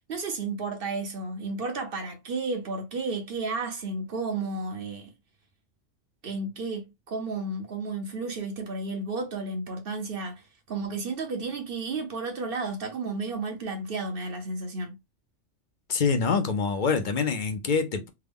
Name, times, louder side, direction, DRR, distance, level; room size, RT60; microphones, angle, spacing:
voice 1, 0.1-5.1 6.2-15.0, right 3 dB, 55° right, 0.9 m, -32 dB
voice 2, 15.9-18.1, left 5 dB, 55° left, 0.6 m, -25 dB
3.5 x 2.1 x 3.4 m
omnidirectional pair, 1.3 m